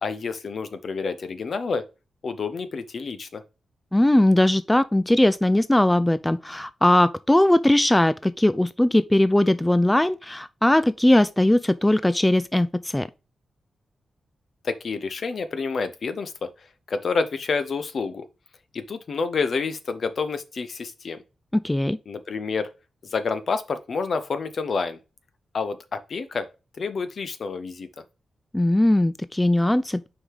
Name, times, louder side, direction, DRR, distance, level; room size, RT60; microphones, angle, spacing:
voice 1, 0.0-1.8 2.2-3.4 14.6-16.5 16.9-18.3 18.7-21.2 22.1-22.7 23.1-25.0 25.5-26.5 26.8-27.9, left 4 dB, 60° left, 0.9 m, -28 dB
voice 2, 3.9-13.1 21.6-22.0 28.5-30.1, left 1 dB, 10° left, 0.3 m, -19 dB
6.2 x 4.8 x 3.8 m
wide cardioid pair, 100°, 0 cm